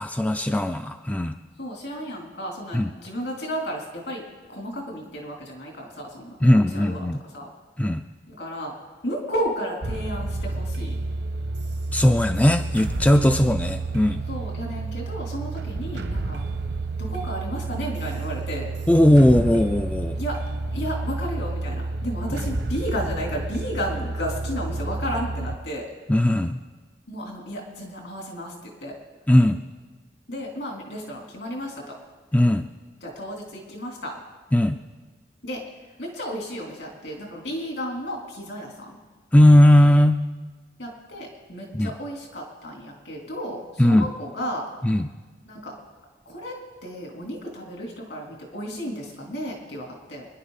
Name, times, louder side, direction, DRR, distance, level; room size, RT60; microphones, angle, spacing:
voice 1, 0.0-1.4 2.7-2.9 6.4-7.2 7.8-8.0 11.9-14.2 18.9-20.2 26.1-26.6 29.3-29.6 32.3-32.7 34.5-34.8 39.3-40.2 41.7-41.9 43.8-44.1 44.8-45.1, left 1 dB, 10° left, 7 dB, 0.3 m, -18 dB
voice 2, 1.6-7.1 7.3-7.5 8.3-8.7 9.0-11.0 14.3-16.4 17.0-18.7 20.1-20.4 20.7-25.9 27.1-28.9 30.3-31.8 33.0-34.1 35.4-35.6 36.0-39.0 40.8-44.7 45.5-45.7 46.3-46.6 46.8-50.3, equal, 75° left, -1 dB, 3.5 m, -33 dB
sound 1, 9.8-25.6, right 2 dB, 65° right, 0.9 m, -30 dB
24.5 x 11.0 x 4.1 m, 1.3 s
head